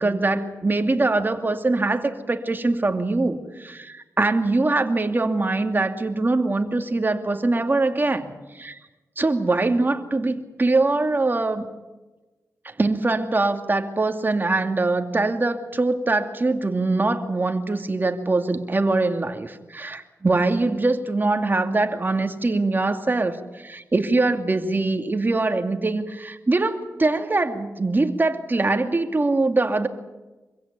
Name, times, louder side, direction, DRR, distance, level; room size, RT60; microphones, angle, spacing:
voice 1, 0.0-8.8 9.2-11.6 12.6-29.9, right 2 dB, 35° right, 6 dB, 2.5 m, -23 dB
25.5 x 16.0 x 9.6 m, 1.1 s
cardioid pair, 65°, 6 cm